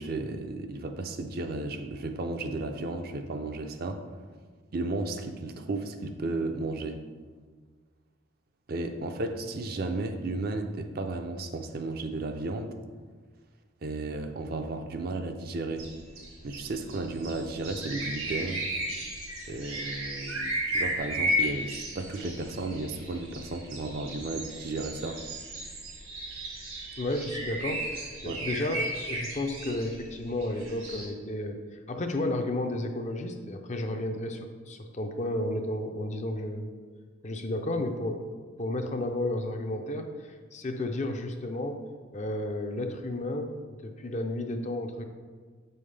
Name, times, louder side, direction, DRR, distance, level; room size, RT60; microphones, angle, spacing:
voice 1, 0.0-4.0 4.7-7.0 8.7-12.8 13.8-15.9 16.4-18.7 19.5-25.2 28.2-28.4, right 2 dB, 45° right, 6 dB, 0.4 m, -34 dB
sound 1, 15.8-31.1, equal, 85° right, 1.7 m, -35 dB
voice 2, 27.0-27.9 28.2-28.8 29.1-36.7 37.2-38.3 38.6-41.8 42.1-45.1, left 1 dB, 35° left, 5 dB, 0.5 m, -32 dB
7.3 x 5.4 x 3.3 m, 1.5 s
head